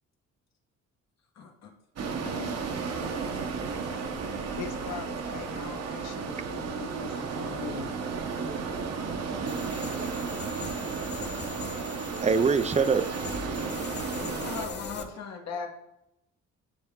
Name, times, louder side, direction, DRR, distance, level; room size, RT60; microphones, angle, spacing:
voice 1, 1.3-1.7 2.2-2.6 14.1-15.7, left 5 dB, 60° left, 1.3 m, -38 dB
sound 1, 2.0-14.7, right 5 dB, 55° right, 1.0 m, -33 dB
voice 2, 4.6-7.9, left 9 dB, 85° left, 0.7 m, -41 dB
voice 3, 9.4-10.4 11.0-11.5 12.0-13.1, right 5 dB, 25° right, 0.4 m, -28 dB
sound 2, 9.5-15.0, left 4 dB, 35° left, 0.9 m, -41 dB
9.7 x 3.5 x 3.7 m
cardioid pair, 90°, 30 cm